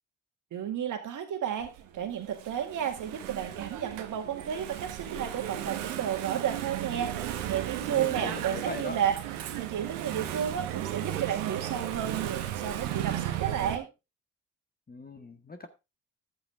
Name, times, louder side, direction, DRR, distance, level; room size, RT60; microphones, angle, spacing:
voice 1, 0.5-7.2 7.4-9.1 9.5-13.9, right 9 dB, 65° right, 6 dB, 2.0 m, -32 dB
Engine / Mechanisms, 1.6-13.8, right 11 dB, 80° right, 1.3 m, -35 dB
voice 2, 7.8-9.0 14.9-15.7, left 3 dB, 25° left, 7 dB, 1.6 m, -40 dB
11.5 x 8.1 x 3.5 m, 0.25 s
hypercardioid pair, 50°, 33 cm